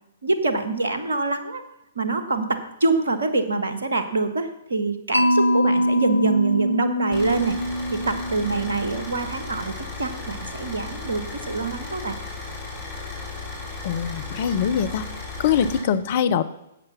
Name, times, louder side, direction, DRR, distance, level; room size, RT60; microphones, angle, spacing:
voice 1, 0.2-1.6 1.9-7.6 7.9-12.2, right 3 dB, 70° right, 9 dB, 1.4 m, -25 dB
Mallet percussion, 5.1-9.2, equal, 90° left, 0.7 m, -23 dB
Car / Idling, 7.1-15.8, left 3 dB, 25° left, 4.0 m, -35 dB
voice 2, 13.8-15.1 15.4-16.4, left 8 dB, 45° left, 13 dB, 0.7 m, -23 dB
11.0 x 7.9 x 5.8 m, 0.87 s
figure-of-eight pair, 115°, 0 cm